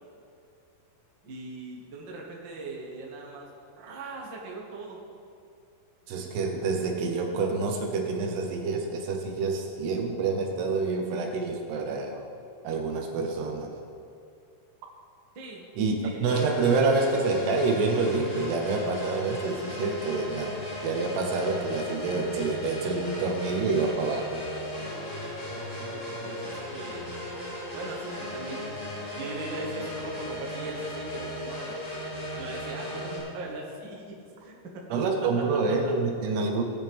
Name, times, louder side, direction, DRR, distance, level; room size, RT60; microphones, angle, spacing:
voice 1, 1.2-3.5 3.7-5.0 15.3-15.7 16.0-16.9 25.8-27.2 27.7-28.8 29.1-31.8 32.4-35.9, right 2 dB, 45° right, -2 dB, 1.4 m, -40 dB
voice 2, 6.1-12.2 12.6-13.8 15.8-24.4 34.9-36.6, right 3 dB, 80° right, 3 dB, 3.2 m, -27 dB
sound 1, 16.3-33.2, left 1 dB, 35° left, 4.2 m, -36 dB
18.5 x 10.5 x 3.6 m, 2.3 s
omnidirectional pair, 4.9 m